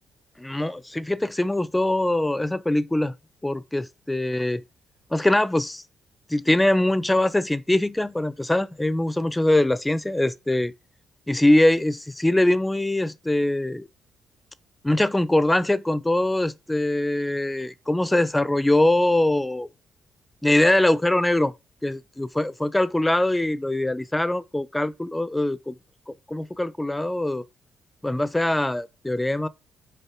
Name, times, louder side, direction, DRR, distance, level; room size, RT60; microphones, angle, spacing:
voice 1, 0.4-3.1 3.4-4.6 5.1-5.8 6.3-10.7 11.3-13.9 14.8-19.7 20.4-21.5 21.8-25.8 26.1-27.4 28.0-29.5, left 1 dB, 10° left, 0.6 m, -22 dB
6.9 x 4.3 x 5.8 m
cardioid pair, 90°, 0 cm